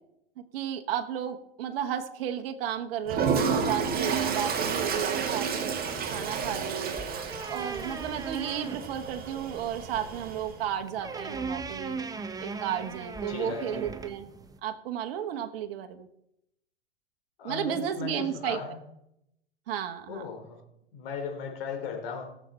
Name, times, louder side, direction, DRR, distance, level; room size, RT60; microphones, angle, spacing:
voice 1, 0.4-5.7 6.1-7.0 7.5-12.0 12.4-14.3 14.6-16.1 17.4-18.6 19.7-20.3, right 9 dB, 65° right, 6 dB, 1.2 m, -33 dB
Toilet flush, 3.1-10.6, right 6 dB, 30° right, 1.8 m, -31 dB
sound 1, 5.9-14.6, right 4 dB, 10° right, 0.8 m, -40 dB
voice 2, 13.3-13.8 17.4-18.8 20.1-20.6 20.9-22.3, left 6 dB, 65° left, 3 dB, 3.3 m, -37 dB
17.0 x 7.4 x 4.3 m, 0.80 s
hypercardioid pair, 100°, 31 cm